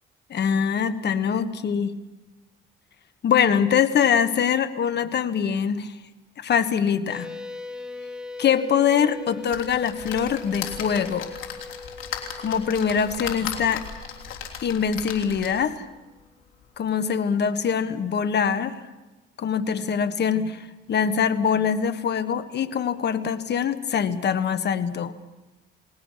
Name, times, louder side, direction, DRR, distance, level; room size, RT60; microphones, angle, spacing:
voice 1, 0.3-1.9 3.2-5.9 6.4-7.3 8.4-11.4 12.4-13.8 14.6-15.9 16.8-18.8 19.4-25.1, left 7 dB, 60° left, 11 dB, 1.5 m, -23 dB
sound 1, 7.1-15.1, left 3 dB, 5° right, 1.6 m, -40 dB
sound 2, 9.5-15.7 16.3-16.4 16.6-16.7, left 8 dB, 80° left, 3.4 m, -36 dB
29.5 x 19.5 x 5.8 m, 1.1 s
cardioid pair, 90°, 20 cm